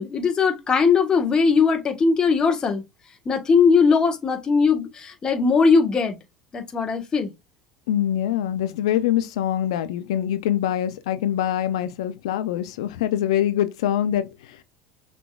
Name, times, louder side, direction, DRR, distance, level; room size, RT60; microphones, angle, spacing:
voice 1, 0.0-2.8 3.2-6.2 6.5-7.3, left 5 dB, 25° left, 1.4 m, -19 dB
voice 2, 7.9-14.6, left 11 dB, 90° left, 0.5 m, -24 dB
5.9 x 3.6 x 2.4 m
supercardioid pair, 115°, 3 cm